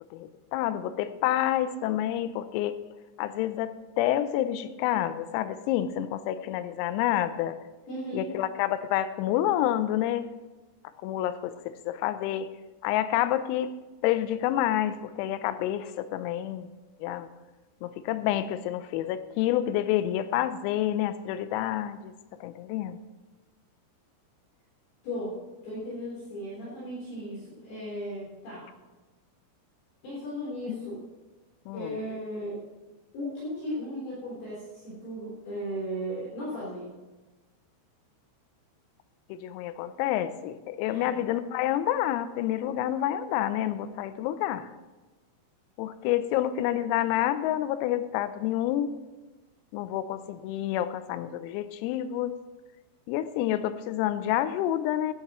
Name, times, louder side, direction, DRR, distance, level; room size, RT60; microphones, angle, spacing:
voice 1, 0.1-2.8 3.2-7.6 8.1-10.3 11.0-12.5 12.8-13.7 14.0-16.7 17.0-17.3 17.8-22.1 22.4-23.0 30.7-31.0 31.7-32.0 39.3-44.7 45.8-48.9 49.7-52.4 53.1-55.1, left 12 dB, 90° left, 12 dB, 3.4 m, -28 dB
voice 2, 7.9-8.3 25.0-25.4 25.6-28.7 30.0-31.0 31.7-32.6 33.1-36.9 40.9-41.1, equal, 50° left, -8 dB, 5.5 m, -36 dB
16.0 x 11.5 x 3.1 m, 1.2 s
omnidirectional pair, 5.9 m